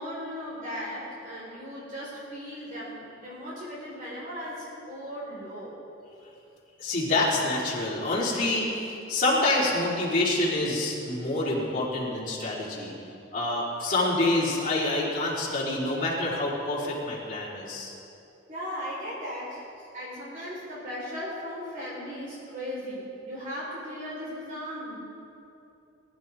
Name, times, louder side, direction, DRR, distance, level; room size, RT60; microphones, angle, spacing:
voice 1, 0.0-5.7 18.5-25.0, equal, 45° right, -7 dB, 3.9 m, -37 dB
voice 2, 6.8-12.9 13.3-17.9, left 2 dB, 45° left, -7 dB, 3.7 m, -27 dB
21.5 x 12.5 x 3.5 m, 2.8 s
head